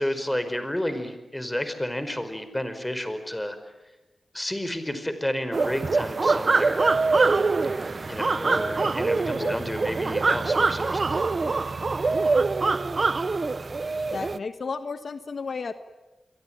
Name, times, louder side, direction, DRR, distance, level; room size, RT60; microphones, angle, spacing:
voice 1, 0.0-3.6 4.3-6.9 8.0-11.2, left 1 dB, 10° left, 9 dB, 4.9 m, -31 dB
sound 1, 5.5-14.4, right 3 dB, 50° right, 0.9 m, -24 dB
voice 2, 9.4-9.9 14.1-15.7, left 4 dB, 65° left, 9 dB, 1.4 m, -33 dB
28.5 x 22.5 x 9.0 m, 1.1 s
wide cardioid pair, 70°, 0 cm